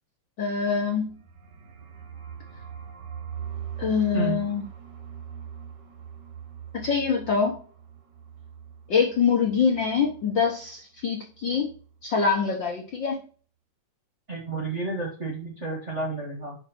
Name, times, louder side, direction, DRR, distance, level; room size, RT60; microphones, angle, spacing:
voice 1, 0.4-1.2 3.8-4.6 6.7-7.6 8.9-11.7 12.0-13.2, left 6 dB, 55° left, 0 dB, 1.4 m, -24 dB
sound 1, 1.0-10.8 11.0-11.1 11.4-11.9, right 8 dB, 55° right, 1.3 m, -42 dB
voice 2, 4.1-4.4 14.3-16.6, right 3 dB, 35° right, -1 dB, 1.2 m, -31 dB
5.7 x 5.6 x 5.6 m, 0.40 s
omnidirectional pair, 3.5 m